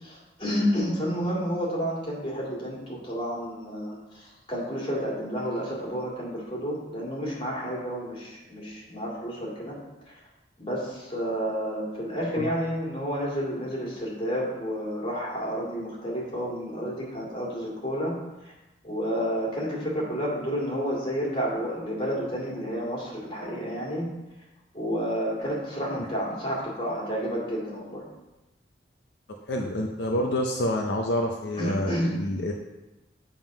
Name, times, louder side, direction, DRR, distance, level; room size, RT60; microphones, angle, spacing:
voice 1, 0.0-4.2 4.5-9.8 10.6-18.1 18.8-24.1 24.7-28.0 31.5-32.2, equal, 30° left, -5 dB, 2.2 m, -30 dB
voice 2, 29.3-32.5, left 1 dB, 70° left, 1 dB, 0.6 m, -28 dB
7.3 x 3.7 x 5.9 m, 1.0 s
head